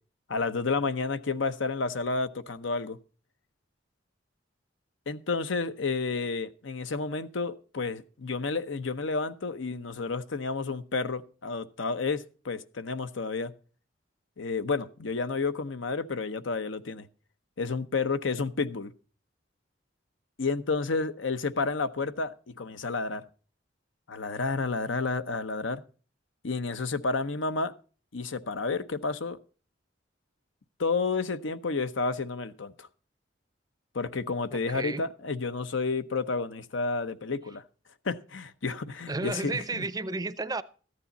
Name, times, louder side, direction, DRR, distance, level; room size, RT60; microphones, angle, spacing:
voice 1, 0.3-3.0 5.1-13.5 14.4-17.1 17.6-18.9 20.4-23.2 24.1-25.8 26.4-27.7 28.1-29.4 30.8-32.9 33.9-37.6 38.0-39.8, left 4 dB, 80° left, 0.8 m, -31 dB
voice 2, 34.5-35.0 39.1-40.6, right 3 dB, 20° right, 0.5 m, -32 dB
14.0 x 9.8 x 4.0 m
head